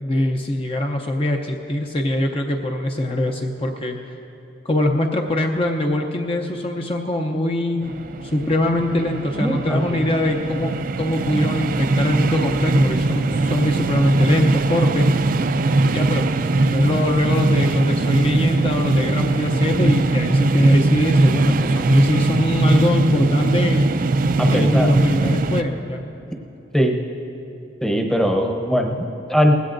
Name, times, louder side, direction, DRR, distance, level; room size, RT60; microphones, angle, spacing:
voice 1, 0.0-4.0 4.6-15.0 15.9-16.2 16.6-23.9 24.5-26.0, left 1 dB, 30° left, 2 dB, 0.6 m, -22 dB
sound 1, 7.8-25.6, right 2 dB, 45° right, 0.4 m, -20 dB
voice 2, 9.4-10.0 24.4-24.9 26.7-27.0 27.8-29.6, equal, 5° left, 2 dB, 0.8 m, -20 dB
20.0 x 16.5 x 2.6 m, 2.9 s
head